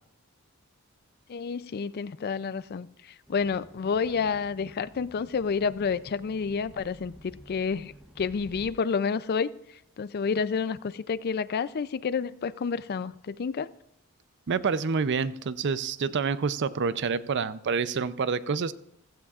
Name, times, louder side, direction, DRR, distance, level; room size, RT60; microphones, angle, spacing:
voice 1, 1.3-9.5 10.0-13.7, left 5 dB, 45° left, 0.4 m, -29 dB
sound 1, 3.3-8.7, equal, 5° right, 0.8 m, -51 dB
voice 2, 14.5-18.7, right 5 dB, 55° right, 0.5 m, -27 dB
15.5 x 15.0 x 2.4 m
head